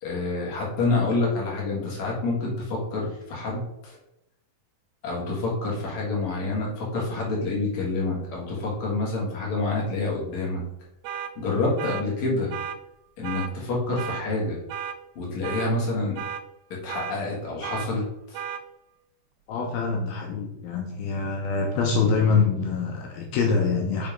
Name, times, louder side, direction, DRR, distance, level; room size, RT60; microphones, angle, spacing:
voice 1, 0.0-4.0 5.0-10.6 11.4-12.5 13.2-14.6 15.2-16.2 16.7-18.4, left 3 dB, 50° left, -3 dB, 3.0 m, -27 dB
sound 1, 11.0-11.3 11.8-12.0 12.5-12.8 13.2-13.5 14.0-14.2 14.7-15.0 15.4-15.7 16.2-16.4 16.9-17.2 17.6-17.9 18.3-18.6, right 8 dB, 80° right, 2.3 m, -33 dB
voice 2, 19.5-24.1, left 4 dB, 75° left, 0 dB, 2.7 m, -25 dB
7.2 x 4.3 x 5.2 m, 0.83 s
omnidirectional pair, 4.7 m